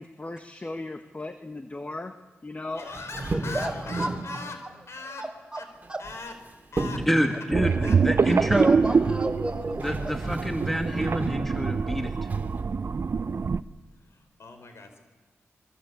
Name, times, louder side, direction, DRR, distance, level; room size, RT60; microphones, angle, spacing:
voice 1, 0.0-2.1 2.4-2.8, left 2 dB, 30° left, 8 dB, 1.6 m, -37 dB
voice 2, 2.7-5.3 5.6-5.7 6.0-6.4 6.7-7.1 7.8-8.0 8.2-8.4 13.9-15.0, left 3 dB, 60° left, 7 dB, 4.9 m, -40 dB
sound 1, 2.9-4.4 5.8-6.4 6.8-7.3 9.3-9.4 9.8-11.5 12.3-12.6, right 2 dB, 35° right, 3.1 m, -32 dB
voice 3, 3.3-4.4 5.2-5.6 5.9-6.0 7.3-7.4 7.7-10.1, right 1 dB, 15° right, 5 dB, 4.6 m, -32 dB
voice 4, 7.1-8.7 9.8-12.3, equal, 5° left, 4 dB, 2.4 m, -28 dB
sound 2, 7.5-13.6, right 5 dB, 55° right, 0.8 m, -25 dB
27.5 x 23.0 x 8.6 m, 1.3 s
cardioid pair, 60°, 5 cm